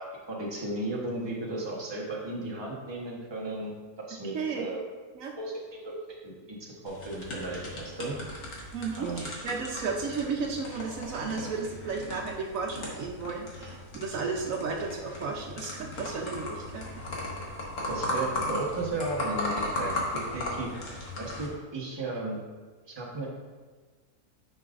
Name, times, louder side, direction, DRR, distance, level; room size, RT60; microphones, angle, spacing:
voice 1, 0.0-3.7 4.0-4.8 5.4-5.9 6.2-6.6 6.8-8.1 9.0-9.3 17.9-20.7 21.2-22.4 22.9-23.3, right 2 dB, 20° right, -3 dB, 1.1 m, -35 dB
voice 2, 4.3-4.7 5.1-5.3 8.7-17.4, right 4 dB, 70° right, 0 dB, 1.1 m, -34 dB
sound 1, 6.9-21.5, left 1 dB, 60° left, 1.7 m, -36 dB
9.8 x 5.4 x 2.5 m, 1.4 s
omnidirectional pair, 1.5 m